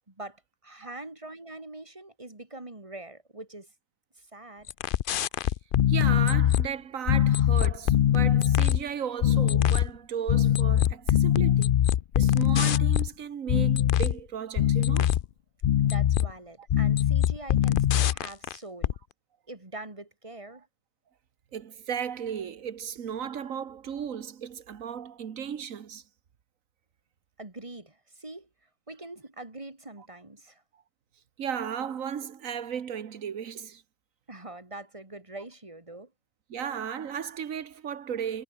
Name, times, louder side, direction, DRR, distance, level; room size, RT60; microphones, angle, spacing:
voice 1, 0.0-3.7 4.2-4.7 15.8-19.0 19.5-20.6 27.4-28.5 28.9-30.6 34.3-36.1, right 2 dB, 25° right, 2.6 m, -43 dB
sound 1, 4.7-6.7 7.1-8.8 9.2-9.9 10.3-13.1 13.5-14.2 14.6-15.3 15.6-16.3 16.7-18.6 18.8-19.0, left 11 dB, 60° left, 0.6 m, -22 dB
voice 2, 5.9-11.7 12.1-15.2 21.5-26.0 31.4-33.8 36.5-38.4, right 8 dB, 85° right, 1.6 m, -35 dB
omnidirectional pair, 1.3 m